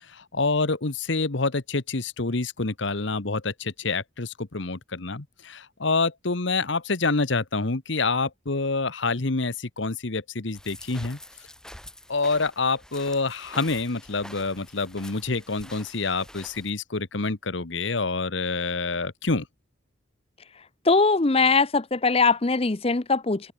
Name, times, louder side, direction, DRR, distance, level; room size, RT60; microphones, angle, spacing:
voice 1, 0.1-11.2 12.1-19.4, left 3 dB, 65° left, 1.3 m, -27 dB
sound 1, 10.5-16.7, left 1 dB, 5° left, 6.0 m, -46 dB
voice 2, 20.9-23.5, left 4 dB, 30° left, 0.7 m, -21 dB
open air
head